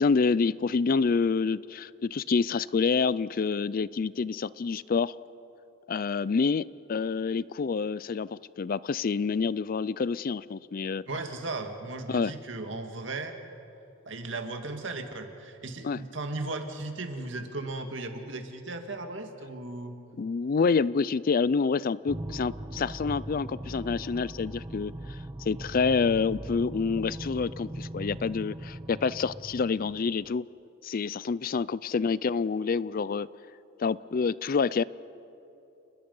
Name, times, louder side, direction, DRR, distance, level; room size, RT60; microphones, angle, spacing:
voice 1, 0.0-5.1 5.9-11.0 12.1-12.3 15.8-16.0 20.2-24.9 25.4-30.4 30.8-33.3 33.8-34.8, left 5 dB, 45° left, 19 dB, 0.4 m, -27 dB
voice 2, 11.1-13.4 14.1-20.0, right 2 dB, 70° right, 5 dB, 2.1 m, -36 dB
sound 1, 22.1-30.3, right 1 dB, 15° right, 0.5 m, -40 dB
29.5 x 21.0 x 5.5 m, 2.8 s
head